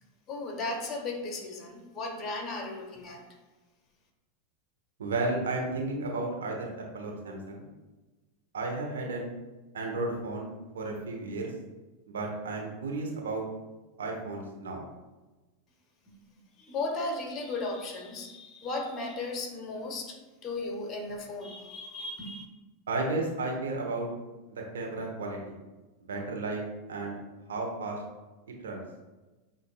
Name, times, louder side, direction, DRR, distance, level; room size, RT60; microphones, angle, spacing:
voice 1, 0.3-3.2 16.6-20.2 20.4-22.5, left 2 dB, 30° left, 2 dB, 1.0 m, -35 dB
voice 2, 5.0-7.7 8.5-9.3 9.7-10.5 10.7-11.5 12.1-13.4 14.0-14.9 22.9-24.1 24.5-25.6 26.0-27.2 27.5-28.0 28.6-28.8, right 2 dB, 80° right, 0 dB, 0.9 m, -33 dB
7.8 x 2.6 x 2.3 m, 1.2 s
hypercardioid pair, 95°, 0 cm